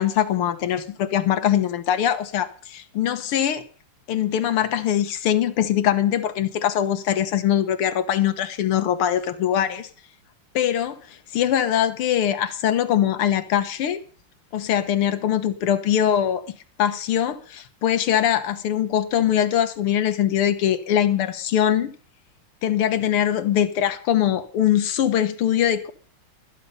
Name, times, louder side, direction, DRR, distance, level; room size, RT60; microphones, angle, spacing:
voice 1, 0.0-3.6 4.1-9.9 10.6-14.0 14.5-16.4 16.8-21.9 22.6-25.9, left 10 dB, 85° left, 2.0 m, -22 dB
20.5 x 9.8 x 5.4 m
omnidirectional pair, 2.4 m